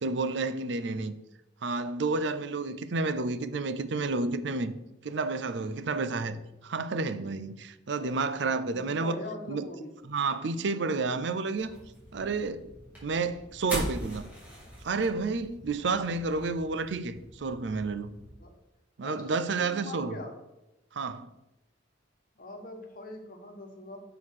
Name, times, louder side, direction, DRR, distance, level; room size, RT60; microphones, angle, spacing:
voice 1, 0.0-1.2 1.6-4.7 5.0-9.2 9.5-9.7 10.0-11.7 12.1-12.7 13.0-14.2 14.8-18.2 19.0-20.2 20.9-21.3, right 3 dB, 65° right, 0.5 m, -30 dB
voice 2, 8.5-9.9 18.4-18.5 19.0-20.4 22.4-24.0, left 1 dB, 45° left, 1.3 m, -42 dB
sound 1, 11.6-18.3, equal, 10° right, 3.1 m, -41 dB
6.3 x 5.6 x 6.4 m
head